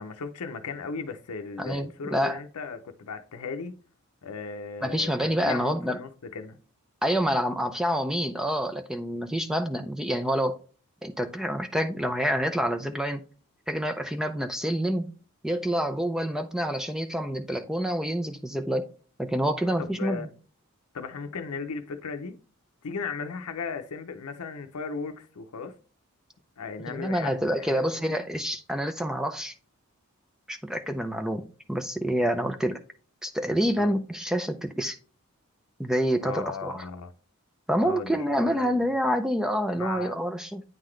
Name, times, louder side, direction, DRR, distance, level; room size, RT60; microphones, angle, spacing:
voice 1, 0.0-3.8 4.2-6.6 19.8-20.3 20.9-22.4 22.8-25.7 26.6-27.8 28.1-28.2 33.8-33.9 36.2-37.1 37.8-38.8 39.7-40.1, left 5 dB, 85° left, 0.6 m, -36 dB
voice 2, 1.6-2.4 4.8-6.0 7.0-10.6 11.0-13.2 13.7-15.1 15.4-18.9 19.2-20.3 26.9-29.5 30.5-32.8 33.2-35.0 35.8-36.9 37.7-40.6, equal, 5° right, 0.4 m, -27 dB
9.0 x 3.9 x 3.1 m
head